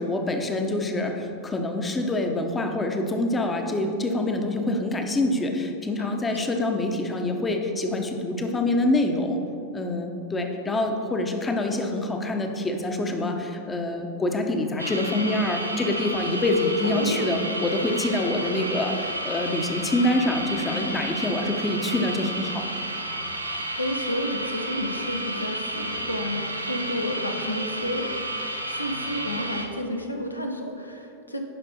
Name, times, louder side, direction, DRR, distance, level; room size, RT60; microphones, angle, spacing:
voice 1, 0.0-9.4 9.7-22.7, left 2 dB, 15° left, 4 dB, 0.8 m, -26 dB
voice 2, 6.0-6.4 16.8-17.3 23.5-28.1 28.7-31.4, left 1 dB, 85° left, 3 dB, 0.8 m, -31 dB
sound 1, 14.8-29.7, right 1 dB, 85° right, 0.7 m, -32 dB
11.0 x 5.3 x 4.2 m, 2.7 s
figure-of-eight pair, 90°, 0 cm